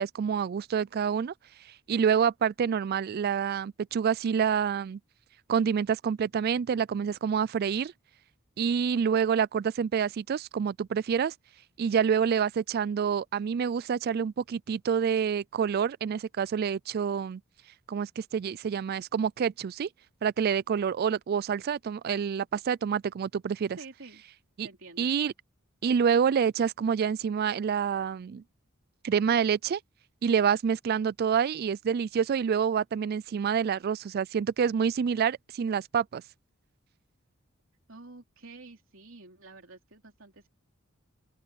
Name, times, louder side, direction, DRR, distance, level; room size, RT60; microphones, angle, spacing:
voice 1, 0.0-1.3 1.9-5.0 5.5-7.9 8.6-11.3 11.8-17.4 17.9-19.9 20.2-23.8 24.6-24.7 25.0-25.3 25.8-28.4 29.0-29.8 30.2-36.2, right 7 dB, 45° right, 0.3 m, -27 dB
voice 2, 23.8-24.2 24.6-25.1 37.9-40.5, right 3 dB, 65° right, 3.9 m, -49 dB
open air
head